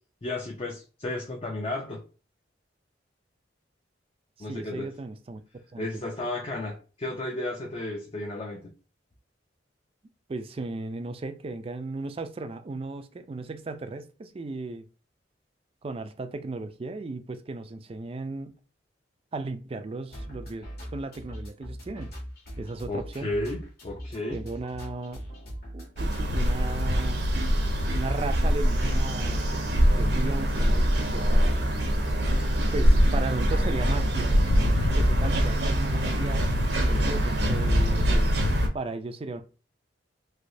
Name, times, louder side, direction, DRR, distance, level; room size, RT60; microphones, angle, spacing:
voice 1, 0.2-2.0 4.4-4.9 5.8-8.7 22.9-24.4, left 2 dB, 30° left, 0.5 m, -33 dB
voice 2, 4.4-5.4 5.7-6.0 10.3-14.9 15.8-18.6 19.3-22.1 22.6-23.3 24.3-25.2 25.7-27.2 27.9-29.4 30.0-31.5 32.7-34.6 35.0-36.4 36.9-38.4 38.7-39.4, right 3 dB, 30° right, 0.4 m, -36 dB
sound 1, 20.1-26.8, equal, 55° left, 1.4 m, -40 dB
sound 2, 26.0-38.7, equal, 65° right, 0.7 m, -24 dB
sound 3, 26.3-38.7, left 1 dB, 80° left, 0.4 m, -31 dB
3.2 x 3.0 x 2.6 m
head